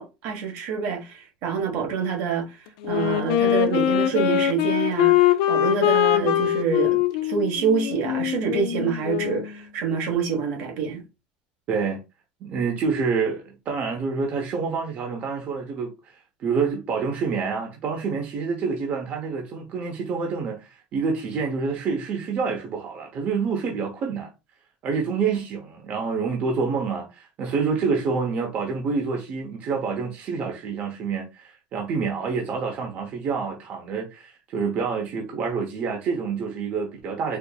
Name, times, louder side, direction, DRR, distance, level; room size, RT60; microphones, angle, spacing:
voice 1, 0.0-2.6 2.8-11.0, right 6 dB, 70° right, 1.3 m, -26 dB
Wind instrument woodwind instrument, 2.8-9.5, left 12 dB, 80° left, 0.5 m, -22 dB
voice 2, 6.1-6.5 11.7-12.0 12.4-24.3 24.8-37.4, right 5 dB, 45° right, 0.8 m, -27 dB
4.4 x 2.6 x 2.3 m
cardioid pair, 135°, 4 cm